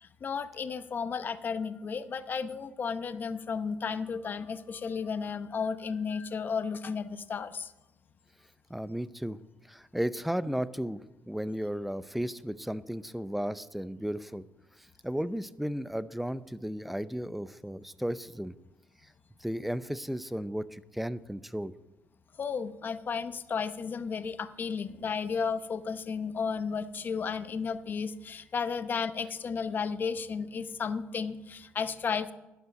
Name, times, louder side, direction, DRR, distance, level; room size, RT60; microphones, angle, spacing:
voice 1, 0.0-7.7 22.4-32.3, left 6 dB, 45° left, 12 dB, 0.8 m, -33 dB
voice 2, 8.7-9.4 9.7-14.5 14.8-18.5 19.4-21.7, equal, 5° right, 15 dB, 0.5 m, -34 dB
12.0 x 5.7 x 8.6 m, 0.99 s
cardioid pair, 85°, 4 cm